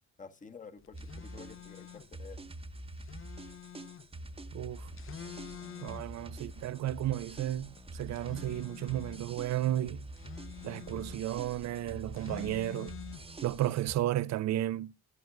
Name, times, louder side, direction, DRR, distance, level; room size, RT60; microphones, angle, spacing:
voice 1, 0.2-2.4, left 5 dB, 25° left, 1.0 m, -50 dB
sound 1, 0.8-13.8, left 9 dB, 45° left, 0.6 m, -49 dB
sound 2, 0.9-14.0, right 2 dB, 20° right, 0.9 m, -46 dB
voice 2, 4.5-4.9 5.8-10.1 10.6-12.9 13.4-14.9, right 13 dB, 65° right, 0.5 m, -33 dB
16.0 x 9.2 x 2.2 m
cardioid pair, 90°, 30 cm